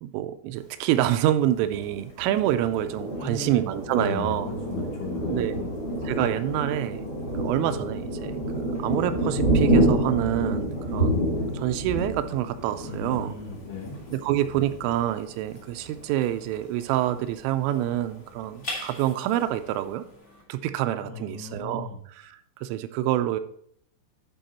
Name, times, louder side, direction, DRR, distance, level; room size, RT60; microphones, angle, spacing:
voice 1, 0.0-4.5 5.3-5.5 6.1-7.1 7.4-11.2 11.5-13.4 14.1-20.0 20.5-23.4, right 13 dB, 85° right, 11 dB, 3.0 m, -27 dB
Thunder, 1.7-16.0 16.5-16.6 16.9-17.5, right 1 dB, 45° left, 0.7 m, -28 dB
voice 2, 3.1-5.7 12.8-14.0 21.0-22.0, left 3 dB, 70° left, 0 dB, 2.6 m, -36 dB
sound 1, 12.7-20.4, left 1 dB, 25° left, 1.5 m, -44 dB
11.5 x 4.6 x 4.2 m, 0.67 s
omnidirectional pair, 5.8 m